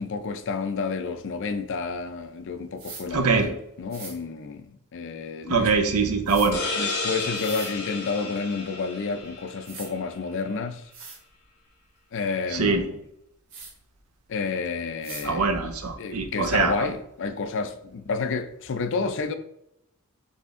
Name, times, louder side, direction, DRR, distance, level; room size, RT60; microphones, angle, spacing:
voice 1, 0.0-5.7 6.0-6.1 6.8-10.8 12.1-13.0 14.3-15.5 16.0-19.3, left 4 dB, 60° left, 0.5 m, -30 dB
sound 1, 2.8-3.0 3.9-4.1 6.3-6.5 7.3-7.7 9.2-9.3 9.6-9.9 10.5-10.6 10.9-11.2 13.5-13.7 15.0-15.3, right 4 dB, 60° right, 1.2 m, -40 dB
voice 2, 3.1-3.5 5.5-6.6 12.5-12.9 15.2-16.7, right 4 dB, 85° right, 0.7 m, -23 dB
sound 2, 6.5-10.0, left 3 dB, 90° left, 1.3 m, -32 dB
4.1 x 3.4 x 3.6 m
head